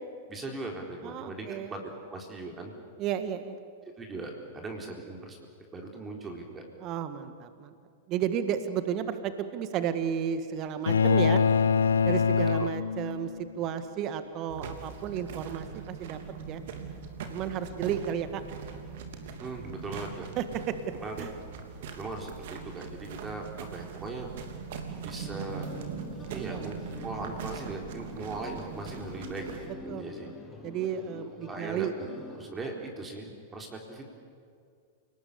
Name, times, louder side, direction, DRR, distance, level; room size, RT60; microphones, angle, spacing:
voice 1, 0.3-1.8 2.1-2.7 4.0-5.4 5.7-6.6 12.6-12.7 19.4-20.3 21.0-21.3 22.0-24.3 25.0-25.7 26.3-30.3 31.5-32.1 32.3-34.1, right 2 dB, 20° right, 1 dB, 4.1 m, -39 dB
voice 2, 1.0-1.7 3.0-3.6 6.8-7.7 8.1-11.4 12.0-13.3 13.6-16.2 16.5-16.6 17.3-18.4 20.4-20.8 21.2-21.3 26.3-26.6 29.9-30.3 30.6-31.9, right 9 dB, 40° right, 10 dB, 1.8 m, -32 dB
sound 1, 10.9-13.4, left 6 dB, 75° left, 0.6 m, -24 dB
sound 2, 14.5-29.7, right 5 dB, 60° right, 3.0 m, -41 dB
sound 3, 25.2-32.5, left 3 dB, 15° left, 4.5 m, -46 dB
29.0 x 19.5 x 8.6 m, 2.3 s
figure-of-eight pair, 95°, 0 cm